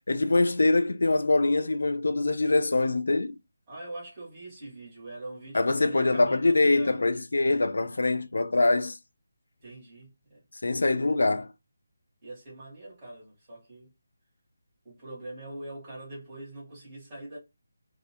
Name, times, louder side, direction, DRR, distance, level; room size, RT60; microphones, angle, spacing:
voice 1, 0.0-3.4 5.5-9.0 10.6-11.5, left 2 dB, 75° left, 0.3 m, -24 dB
voice 2, 3.7-7.0 9.6-10.4 12.2-13.9 14.8-17.4, right 1 dB, 10° right, 1.0 m, -43 dB
2.4 x 2.2 x 2.6 m
figure-of-eight pair, 180°, 0 cm